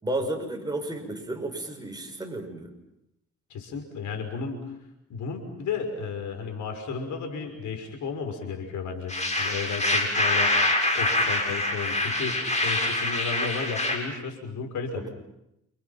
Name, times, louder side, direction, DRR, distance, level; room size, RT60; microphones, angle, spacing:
voice 1, 0.0-2.7 15.0-15.1, right 1 dB, 15° right, 3 dB, 6.7 m, -32 dB
voice 2, 3.5-4.7 5.1-10.5 10.9-15.0, left 5 dB, 75° left, 5 dB, 6.2 m, -33 dB
sound 1, 9.1-14.0, left 2 dB, 25° left, 7.1 m, -25 dB
29.5 x 28.5 x 6.0 m, 0.84 s
cardioid pair, 90°, 30 cm